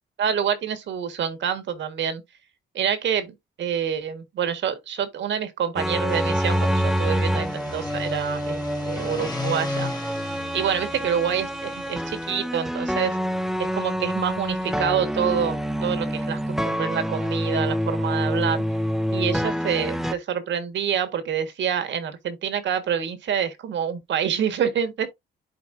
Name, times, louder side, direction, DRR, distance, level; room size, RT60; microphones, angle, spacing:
voice 1, 0.2-2.2 2.7-9.9 10.5-13.2 13.6-16.4 16.6-18.6 19.1-25.1, right 8 dB, 65° right, 1.6 m, -27 dB
sound 1, 5.8-20.1, equal, ahead, 0.7 m, -27 dB
sound 2, 6.0-12.3, left 4 dB, 20° left, 1.6 m, -37 dB
11.5 x 4.2 x 2.6 m
cardioid pair, 90°, 20 cm